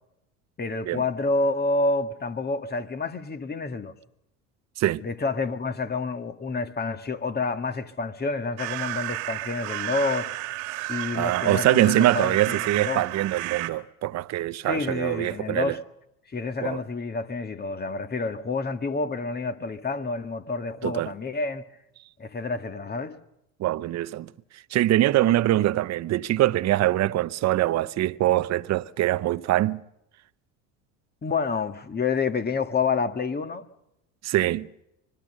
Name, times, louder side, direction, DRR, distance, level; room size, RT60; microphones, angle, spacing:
voice 1, 0.6-3.9 5.0-10.3 10.9-13.0 14.6-15.8 16.3-21.6 22.2-23.2 31.2-33.6, left 3 dB, 25° left, 1.8 m, -28 dB
sound 1, 8.6-13.7, right 17 dB, 75° right, 2.0 m, -32 dB
voice 2, 11.2-15.8 16.6-16.8 20.8-21.1 23.6-24.3 24.7-29.8 34.2-34.7, right 14 dB, 45° right, 0.8 m, -23 dB
25.0 x 20.5 x 6.7 m
hypercardioid pair, 85°, 39 cm